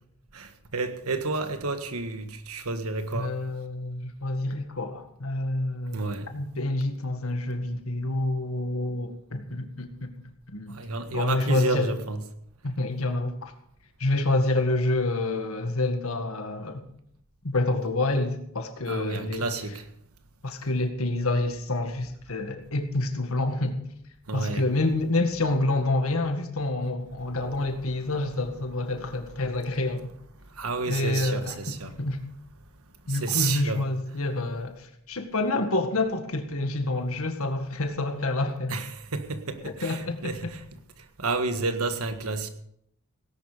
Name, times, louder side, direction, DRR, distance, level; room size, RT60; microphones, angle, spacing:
voice 1, 0.3-3.4 5.9-6.3 10.7-12.2 18.9-19.8 24.3-24.6 30.6-31.9 33.1-33.8 38.7-40.6 41.2-42.5, right 3 dB, 90° right, 1.6 m, -30 dB
voice 2, 3.1-10.1 10.5-10.8 11.1-11.9 12.6-13.5 14.0-16.8 17.4-19.5 20.4-23.8 24.3-30.1 30.9-32.2 33.1-38.8 39.6-40.5, left 2 dB, 80° left, 1.9 m, -28 dB
18.0 x 11.0 x 5.1 m
head